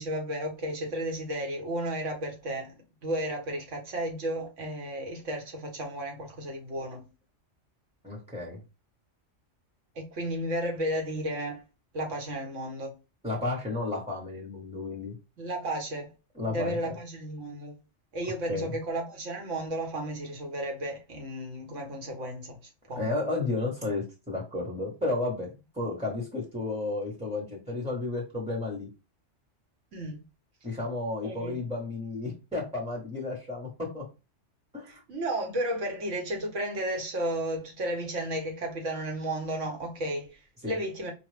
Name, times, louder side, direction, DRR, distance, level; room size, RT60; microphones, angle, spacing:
voice 1, 0.0-2.7 3.0-7.0 10.0-11.6 11.9-12.9 15.4-16.1 16.5-17.8 18.1-22.6 22.9-23.2 29.9-30.2 31.2-31.6 34.9-41.1, right 1 dB, 85° right, 1.6 m, -33 dB
voice 2, 8.0-8.6 13.2-15.2 16.4-16.8 18.5-18.7 22.9-28.9 30.6-34.0 34.7-35.0 40.6-40.8, left 2 dB, 5° right, 1.0 m, -32 dB
4.9 x 2.3 x 3.2 m
omnidirectional pair, 1.3 m